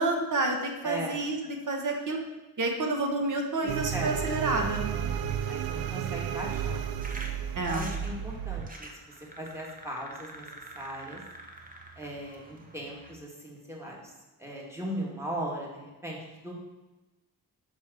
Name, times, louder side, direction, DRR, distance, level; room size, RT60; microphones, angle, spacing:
voice 1, 0.0-1.4 1.7-2.2 2.6-4.9 7.6-7.9, right 2 dB, 55° right, 3 dB, 1.2 m, -29 dB
voice 2, 0.8-1.2 3.9-4.1 4.9-6.8 7.7-8.9 9.4-10.5 10.8-11.2 12.0-14.1 14.4-16.5, right 1 dB, 5° right, -3 dB, 1.8 m, -38 dB
sound 1, 3.7-8.7, right 9 dB, 75° right, 0.5 m, -32 dB
sound 2, 7.0-13.1, right 2 dB, 20° right, 0.9 m, -47 dB
5.2 x 4.3 x 6.1 m, 1.1 s
cardioid pair, 85°, 37 cm